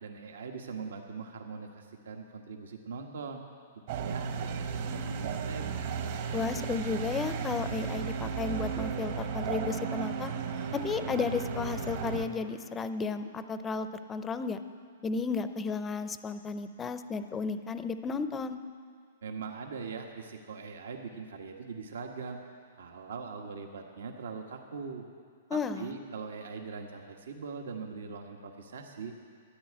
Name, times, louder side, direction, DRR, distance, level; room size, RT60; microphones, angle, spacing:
voice 1, 0.0-3.4 3.9-5.8 19.2-22.4 22.8-25.1 25.5-29.1, right 5 dB, 80° right, 3 dB, 1.3 m, -41 dB
sound 1, 3.9-12.3, right 6 dB, 50° right, 1.3 m, -34 dB
voice 2, 6.3-10.3 10.7-14.6 15.0-18.6 25.5-26.0, left 5 dB, 15° left, 11 dB, 0.5 m, -33 dB
13.5 x 10.0 x 8.6 m, 2.2 s
hypercardioid pair, 155°, 0 cm